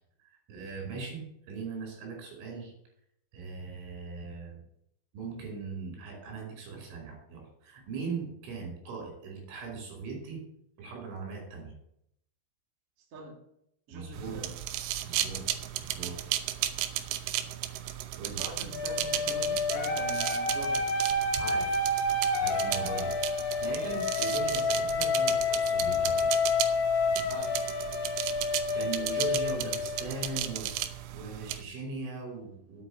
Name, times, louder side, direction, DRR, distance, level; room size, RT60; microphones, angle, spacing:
voice 1, 0.5-2.7 3.3-4.6 5.1-10.4 10.8-11.7 13.9-14.4 15.0-15.4 15.8-16.2 18.2-18.4 21.4-21.8 22.4-23.1 23.6-26.4 27.1-27.2 28.7-30.7 31.1-32.8, right 4 dB, 70° right, 1 dB, 7.5 m, -39 dB
voice 2, 13.1-13.4 13.9-14.5 18.4-20.9 23.0-23.1 27.3-27.6, right 2 dB, 35° right, 0 dB, 2.8 m, -43 dB
sound 1, 14.1-31.6, right 12 dB, 90° right, 3.4 m, -35 dB
sound 2, 18.7-30.5, left 3 dB, 65° left, 3.9 m, -29 dB
9.9 x 8.9 x 8.7 m, 0.74 s
omnidirectional pair, 5.8 m